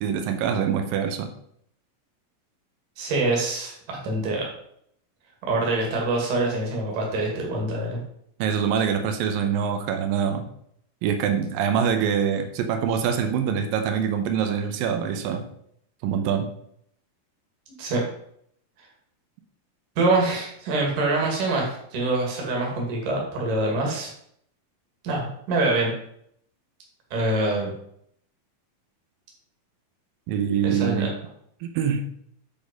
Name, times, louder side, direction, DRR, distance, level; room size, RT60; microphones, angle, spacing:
voice 1, 0.0-1.3 8.4-10.5 11.0-15.5 16.0-16.5 30.3-31.2 31.6-32.1, right 7 dB, 85° right, 6 dB, 2.6 m, -24 dB
voice 2, 3.0-4.5 5.4-8.0 17.8-18.0 20.0-24.1 25.0-25.9 27.1-27.7 30.6-31.1, right 2 dB, 65° right, -1 dB, 3.6 m, -25 dB
10.0 x 4.1 x 5.2 m, 0.69 s
omnidirectional pair, 4.0 m